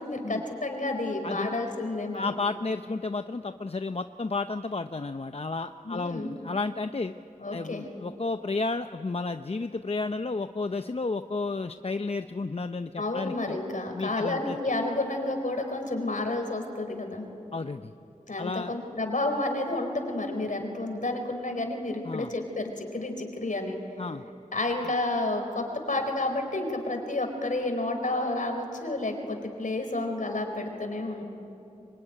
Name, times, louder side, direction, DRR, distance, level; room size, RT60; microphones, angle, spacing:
voice 1, 0.0-2.2 5.8-6.3 7.4-7.9 13.0-17.3 18.3-23.8 24.5-31.2, left 2 dB, 70° left, 4 dB, 4.5 m, -30 dB
voice 2, 1.2-1.5 2.1-7.1 7.5-13.6 13.9-14.6 17.5-17.9 18.4-18.7 22.0-22.3 24.0-24.2 24.8-24.9, left 3 dB, 45° left, 8 dB, 0.6 m, -32 dB
24.5 x 24.5 x 10.0 m, 2.7 s
wide cardioid pair, 70°, 14 cm